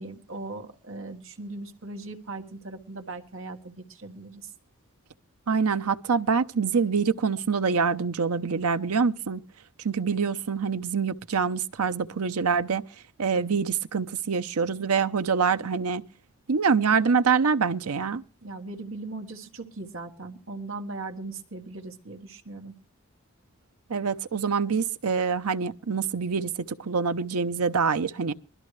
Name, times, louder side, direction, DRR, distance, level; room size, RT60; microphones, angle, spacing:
voice 1, 0.0-4.5 18.4-22.7, right 3 dB, 65° right, 1.6 m, -39 dB
voice 2, 5.5-9.4 9.8-12.8 13.2-16.0 16.5-18.2 23.9-28.3, right 5 dB, 85° right, 0.7 m, -25 dB
21.5 x 13.0 x 3.2 m
head